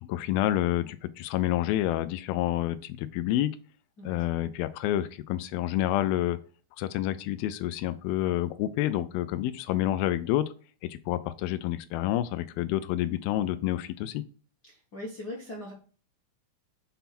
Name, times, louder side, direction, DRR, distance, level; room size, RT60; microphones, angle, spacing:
voice 1, 0.0-3.6 4.0-6.4 6.8-10.5 10.8-14.2, left 14 dB, 85° left, 13 dB, 2.4 m, -28 dB
voice 2, 14.7-15.7, left 1 dB, 60° left, -3 dB, 1.0 m, -40 dB
7.0 x 3.8 x 4.2 m, 0.39 s
omnidirectional pair, 4.2 m